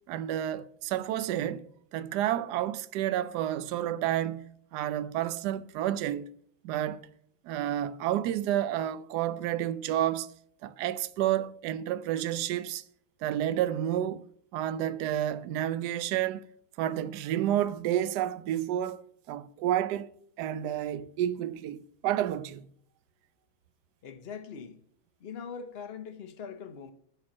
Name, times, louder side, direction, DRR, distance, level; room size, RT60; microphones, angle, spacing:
voice 1, 0.1-4.4 4.7-6.3 6.6-7.1 7.4-10.3 10.6-12.8 13.2-14.2 14.5-16.4 16.8-20.1 20.4-22.7, right 12 dB, 70° right, 1.1 m, -30 dB
voice 2, 24.0-24.8 25.2-26.9, left 6 dB, 45° left, 0.9 m, -42 dB
12.0 x 4.4 x 6.1 m
omnidirectional pair, 2.2 m